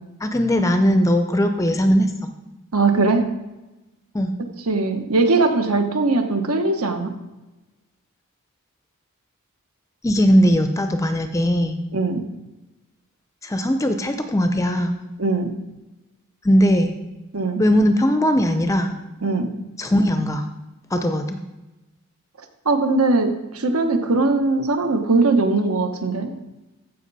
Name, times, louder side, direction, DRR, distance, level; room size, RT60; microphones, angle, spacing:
voice 1, 0.2-2.1 4.1-4.3 10.0-11.8 13.4-14.9 16.4-16.9 17.6-18.9 19.8-20.4 20.9-21.4, equal, 15° left, 7 dB, 0.5 m, -19 dB
voice 2, 2.7-3.2 4.7-7.1 11.9-12.2 15.2-15.5 17.3-17.6 19.2-19.5 22.6-26.3, right 3 dB, 75° right, 6 dB, 1.2 m, -20 dB
14.5 x 5.8 x 4.1 m, 1.0 s
head